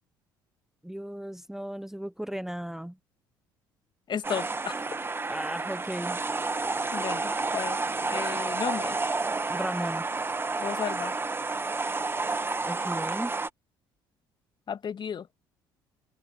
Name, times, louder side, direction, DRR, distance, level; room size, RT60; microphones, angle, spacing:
voice 1, 0.8-3.0 5.3-6.2 9.5-10.1 12.6-13.3, equal, 5° right, 1.1 m, -35 dB
voice 2, 4.1-4.8 6.9-7.8 8.1-9.0 10.6-11.2 14.7-15.3, left 7 dB, 45° left, 2.7 m, -33 dB
sound 1, 4.2-13.5, right 3 dB, 20° right, 1.5 m, -30 dB
open air
hypercardioid pair, 55°, 11 cm